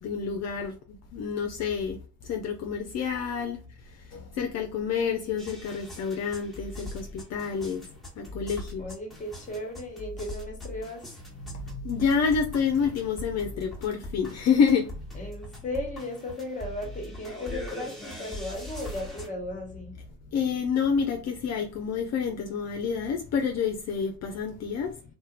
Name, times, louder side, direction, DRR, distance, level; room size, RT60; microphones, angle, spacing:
voice 1, 0.0-7.8 8.2-8.9 11.4-15.2 20.3-24.9, left 6 dB, 60° left, 0.5 m, -28 dB
sound 1, 5.4-19.3, left 1 dB, ahead, 1.1 m, -41 dB
voice 2, 8.8-11.1 15.1-20.0, left 1 dB, 25° left, 1.0 m, -36 dB
2.8 x 2.1 x 2.4 m
cardioid pair, 90°, 30 cm